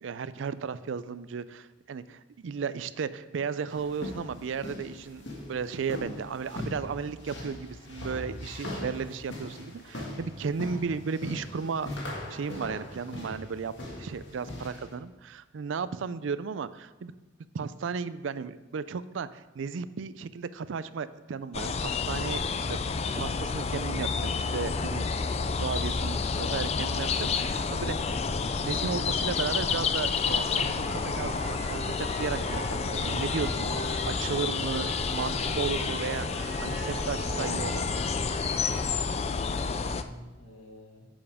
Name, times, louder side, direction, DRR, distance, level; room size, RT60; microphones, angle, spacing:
voice 1, 0.0-11.9 12.3-13.7 14.0-17.1 17.5-22.7 23.0-25.1 25.6-33.8 34.1-37.9, right 5 dB, 75° right, 15 dB, 0.4 m, -35 dB
sound 1, 3.7-14.9, left 1 dB, 65° left, 1.8 m, -40 dB
sound 2, 21.5-40.0, left 5 dB, 35° left, 0.4 m, -30 dB
sound 3, 30.6-38.8, right 2 dB, 40° right, 2.8 m, -40 dB
voice 2, 39.2-41.1, equal, 90° left, -2 dB, 2.4 m, -48 dB
10.0 x 7.1 x 3.5 m, 1.2 s
head